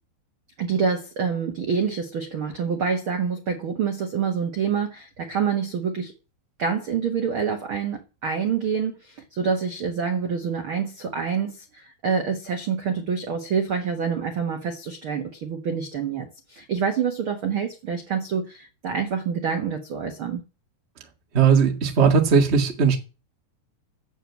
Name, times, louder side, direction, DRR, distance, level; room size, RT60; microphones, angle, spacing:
voice 1, 0.6-6.1 6.6-20.4, right 6 dB, 75° right, 1.2 m, -27 dB
voice 2, 21.3-23.0, right 6 dB, 45° right, 0.8 m, -18 dB
9.1 x 7.8 x 7.3 m
omnidirectional pair, 4.6 m